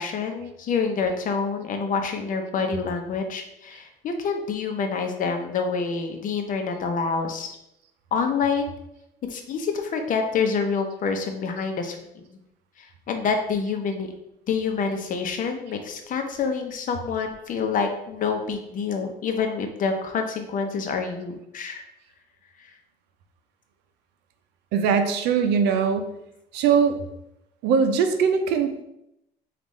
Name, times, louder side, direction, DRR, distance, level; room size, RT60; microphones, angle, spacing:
voice 1, 0.0-7.6 8.1-8.7 9.3-12.2 12.8-14.1 14.5-21.8 22.6-22.7, left 5 dB, 50° left, 5 dB, 0.7 m, -27 dB
voice 2, 24.7-26.1 26.5-27.0 27.6-28.8, right 6 dB, 90° right, 7 dB, 0.5 m, -21 dB
5.2 x 2.5 x 3.1 m, 0.83 s
cardioid pair, 110°, 17 cm